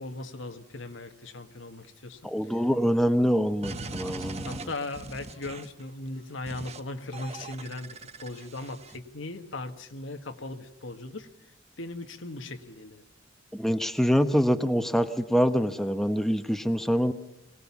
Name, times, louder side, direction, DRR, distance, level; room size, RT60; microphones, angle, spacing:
voice 1, 0.0-2.2 4.5-11.3 11.8-13.0, left 2 dB, 90° left, 7 dB, 1.6 m, -38 dB
voice 2, 2.2-4.6 13.5-17.1, equal, ahead, 8 dB, 0.9 m, -25 dB
sound 1, 3.6-5.8 6.5-6.8 7.1-9.0, right 3 dB, 35° right, 1.1 m, -40 dB
23.5 x 18.5 x 7.2 m, 0.95 s
head